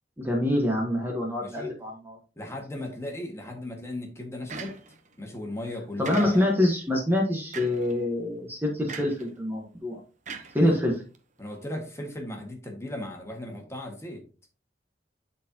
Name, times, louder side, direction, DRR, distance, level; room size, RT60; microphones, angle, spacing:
voice 1, 0.2-2.2 6.0-10.0 10.5-10.9, left 1 dB, 10° right, 0 dB, 1.3 m, -25 dB
voice 2, 1.4-1.7 2.4-4.8 5.2-6.5 10.6-10.8 11.4-14.2, left 1 dB, 15° left, 1 dB, 1.8 m, -37 dB
sound 1, 4.5-5.1 6.0-6.7 7.5-7.9 8.9-9.3 10.3-11.2, right 5 dB, 45° right, 1.0 m, -40 dB
11.5 x 4.4 x 2.9 m, 0.35 s
head